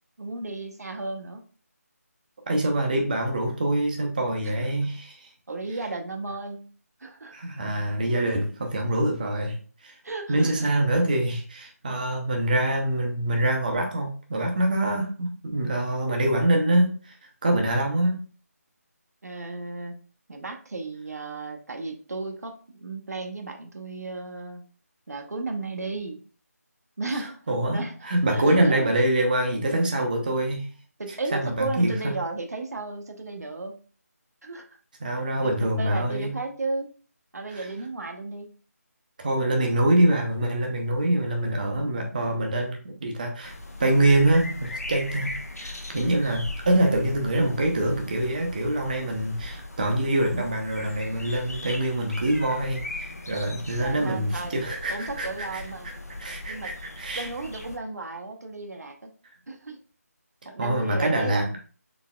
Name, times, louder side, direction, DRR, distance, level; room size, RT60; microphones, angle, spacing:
voice 1, 0.2-1.4 4.4-4.7 5.5-6.7 7.0-7.3 10.0-10.7 19.2-19.9 20.3-24.6 25.1-26.2 27.0-27.3 27.7-27.9 28.3-28.9 31.0-33.8 34.4-34.7 35.4-36.9 37.3-38.5 53.8-54.6 54.9-55.9 56.5-56.7 57.1-59.1 59.5-59.8 60.4-61.5, right 3 dB, 75° right, 3 dB, 0.8 m, -34 dB
voice 2, 2.5-5.2 7.3-9.6 9.8-9.9 10.3-16.9 17.4-18.2 27.1-27.2 27.5-30.7 31.3-32.1 35.0-36.3 37.5-37.7 39.2-43.5 43.8-55.9 56.2-57.3 60.6-61.6, right 1 dB, 30° right, 2 dB, 0.6 m, -25 dB
Ibiza Sant Mateu forest birds, 43.4-57.8, left 2 dB, 70° left, 0.9 m, -39 dB
4.0 x 3.4 x 2.2 m, 0.38 s
figure-of-eight pair, 170°, 9 cm